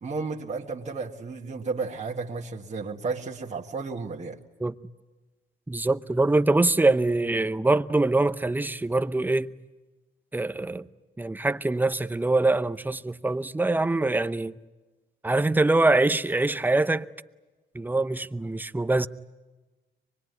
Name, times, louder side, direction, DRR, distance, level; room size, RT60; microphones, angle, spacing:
voice 1, 0.0-4.4, right 4 dB, 35° right, 1.9 m, -33 dB
voice 2, 5.7-9.5 10.3-10.9 11.2-14.6 15.2-17.1 17.7-19.1, right 2 dB, 10° right, 0.8 m, -24 dB
24.5 x 21.5 x 9.5 m
cardioid pair, 90°, 20 cm